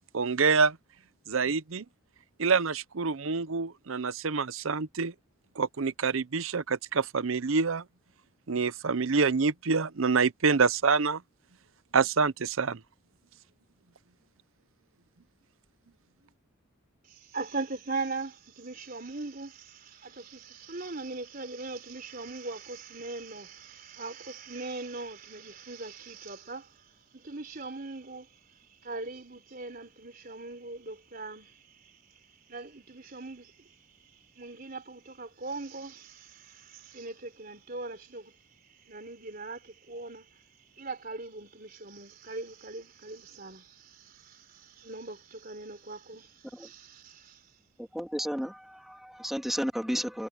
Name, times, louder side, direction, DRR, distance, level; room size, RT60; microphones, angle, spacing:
voice 1, 0.1-0.8 1.3-1.8 2.4-5.1 5.6-7.8 8.5-11.2 11.9-12.8, right 5 dB, 70° right, 0.7 m, -26 dB
voice 2, 17.1-40.4 40.7-47.4, right 3 dB, 40° right, 3.9 m, -41 dB
voice 3, 47.8-50.3, equal, ahead, 2.7 m, -33 dB
head